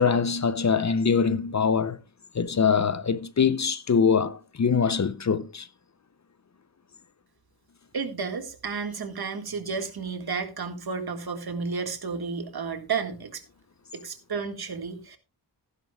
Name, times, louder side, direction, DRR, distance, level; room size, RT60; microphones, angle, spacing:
voice 1, 0.0-2.0 2.3-5.7, left 6 dB, 40° left, 0.7 m, -23 dB
voice 2, 7.9-13.4 13.9-15.2, right 5 dB, 60° right, 1.9 m, -32 dB
15.5 x 10.5 x 2.3 m
wide cardioid pair, 100°, 41 cm